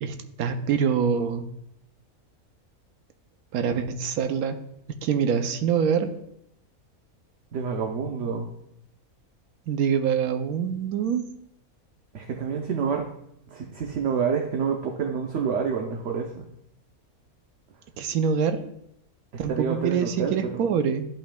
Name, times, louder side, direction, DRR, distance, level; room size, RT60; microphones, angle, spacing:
voice 1, 0.0-1.5 3.5-4.6 5.0-6.1 9.7-11.3 18.0-18.6 19.4-21.1, right 7 dB, 80° right, 8 dB, 1.1 m, -25 dB
voice 2, 7.5-8.5 12.1-13.1 13.5-16.5 19.3-20.7, right 6 dB, 60° right, 2 dB, 1.0 m, -28 dB
11.5 x 5.5 x 2.2 m, 0.76 s
omnidirectional pair, 1.5 m